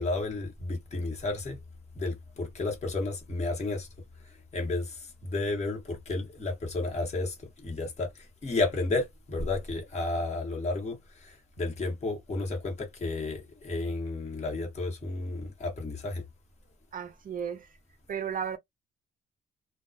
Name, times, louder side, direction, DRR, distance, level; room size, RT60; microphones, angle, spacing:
voice 1, 0.0-1.6 1.9-3.9 4.5-16.2, left 2 dB, 35° left, 1.1 m, -32 dB
voice 2, 16.9-17.7 18.1-18.6, right 8 dB, 45° right, 0.5 m, -34 dB
2.3 x 2.2 x 2.4 m
cardioid pair, 90°, 20 cm